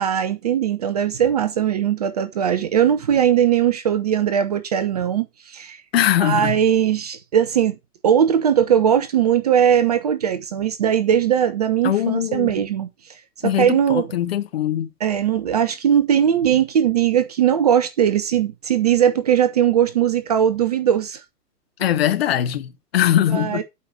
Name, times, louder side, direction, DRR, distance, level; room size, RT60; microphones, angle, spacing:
voice 1, 0.0-5.8 6.2-7.8 8.0-12.9 13.4-14.1 15.0-21.2 23.3-23.6, right 9 dB, 25° right, 0.6 m, -19 dB
voice 2, 5.9-6.6 11.8-12.5 13.4-14.9 21.8-23.6, left 11 dB, 40° left, 1.1 m, -21 dB
8.5 x 5.2 x 6.1 m
figure-of-eight pair, 125°, 49 cm